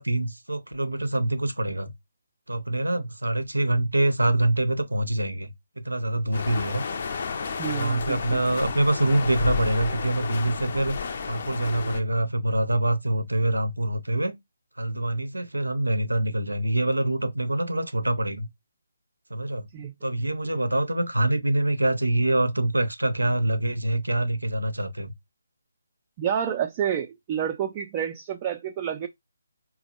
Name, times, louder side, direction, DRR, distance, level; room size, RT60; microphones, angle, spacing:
voice 1, 0.0-1.9 2.5-6.8 7.7-14.3 14.8-18.5 19.3-19.7 20.0-25.1, right 1 dB, 85° right, 0.5 m, -25 dB
sound 1, 6.3-12.0, left 5 dB, 45° left, 0.5 m, -32 dB
voice 2, 7.6-8.4 19.7-19.9 26.2-29.1, right 9 dB, 25° right, 0.3 m, -29 dB
4.1 x 2.0 x 2.8 m
figure-of-eight pair, 150°, 0 cm